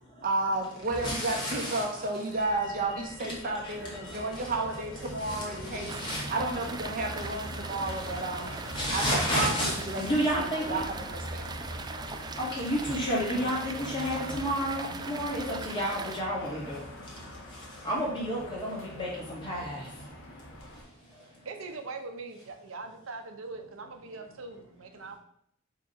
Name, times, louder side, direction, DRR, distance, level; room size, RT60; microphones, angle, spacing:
voice 1, 0.2-6.0 6.3-8.5 8.9-11.5, right 2 dB, 45° right, 1.0 m, -32 dB
voice 2, 1.0-1.8 4.0-4.2 5.3-5.4 5.7-6.2 8.4-10.8 11.7-21.5, equal, 25° left, 2.2 m, -32 dB
Motor vehicle (road), 2.3-20.8, equal, 80° left, 1.6 m, -42 dB
sound 1, 5.9-16.2, right 4 dB, 20° right, 0.3 m, -41 dB
voice 3, 21.4-25.2, right 3 dB, 75° right, 0.8 m, -41 dB
5.0 x 3.8 x 5.6 m
head